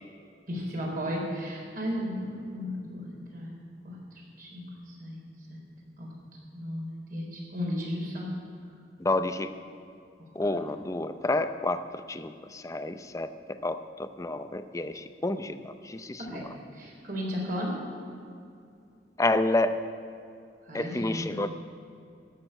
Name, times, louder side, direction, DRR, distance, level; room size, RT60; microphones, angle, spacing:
voice 1, 0.5-3.5 3.8-5.2 5.5-5.6 6.0-6.1 6.5-8.3 10.4-10.6 16.2-16.5 16.7-17.8 20.7-21.5, equal, 55° right, -3 dB, 4.2 m, -35 dB
voice 2, 9.0-9.5 10.4-11.8 12.1-16.2 19.2-19.8 20.7-21.5, left 2 dB, 20° left, 10 dB, 0.6 m, -29 dB
14.0 x 6.8 x 10.0 m, 2.5 s
head